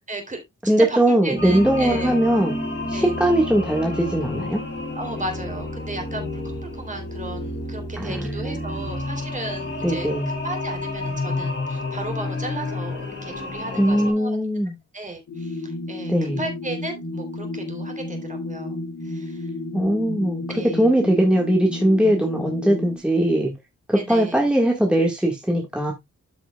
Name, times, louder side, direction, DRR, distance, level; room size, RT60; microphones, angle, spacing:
voice 1, 0.1-1.0 1.2-2.1 2.9-3.2 5.0-6.4 6.7-14.4 14.9-18.8 19.0-19.5 20.5-20.9 23.9-24.5, right 2 dB, 25° right, 3.2 m, -35 dB
voice 2, 0.7-2.6 2.9-4.6 8.0-8.9 9.8-10.3 13.8-14.7 16.1-16.4 19.7-20.4 20.8-23.5 23.9-25.9, right 1 dB, 5° right, 1.6 m, -20 dB
sound 1, 1.4-14.1, left 2 dB, 35° left, 4.3 m, -30 dB
sound 2, 15.3-23.0, left 2 dB, 70° left, 2.6 m, -32 dB
13.5 x 5.9 x 2.3 m
wide cardioid pair, 145°, 31 cm